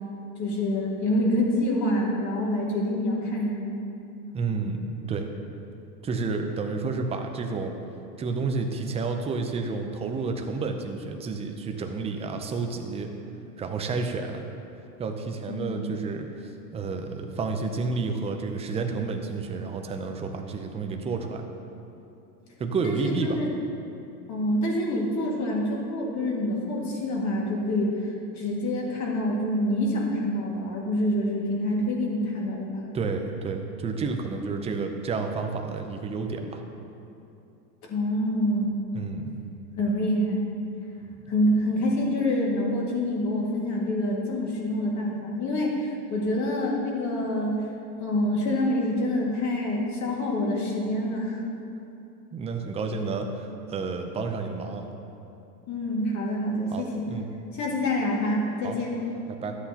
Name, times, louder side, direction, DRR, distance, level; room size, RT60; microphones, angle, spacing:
voice 1, 0.4-3.8 15.5-15.9 22.8-23.5 24.3-32.8 37.8-38.7 39.8-40.5 41.3-47.6 48.0-51.4 55.7-57.1 57.6-58.9, left 1 dB, 35° left, -2 dB, 2.0 m, -26 dB
voice 2, 4.3-4.8 5.1-5.3 6.0-7.7 8.2-13.1 13.6-14.4 15.0-16.3 16.7-21.4 22.6-23.4 32.9-36.6 38.9-39.3 52.3-54.9 56.7-57.3 58.6-58.8 59.4-59.6, right 4 dB, 15° right, 4 dB, 0.4 m, -30 dB
12.5 x 8.0 x 2.8 m, 2.7 s
supercardioid pair, 120°, 50 cm